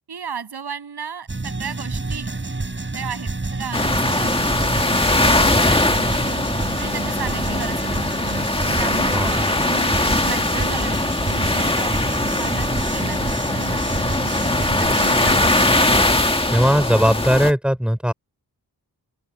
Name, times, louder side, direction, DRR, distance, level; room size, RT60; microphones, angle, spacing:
voice 1, 0.1-2.3 2.9-6.3 6.8-8.3 8.7-11.0 11.3-13.2 13.5-13.9 14.4-15.8, right 6 dB, 80° right, 7.0 m, -34 dB
sound 1, 1.3-16.0, right 3 dB, 30° right, 8.0 m, -29 dB
sound 2, 3.7-17.5, left 2 dB, 15° left, 1.8 m, -21 dB
voice 2, 9.1-9.5 16.5-18.1, equal, ahead, 4.4 m, -18 dB
open air
wide cardioid pair, 115°, 38 cm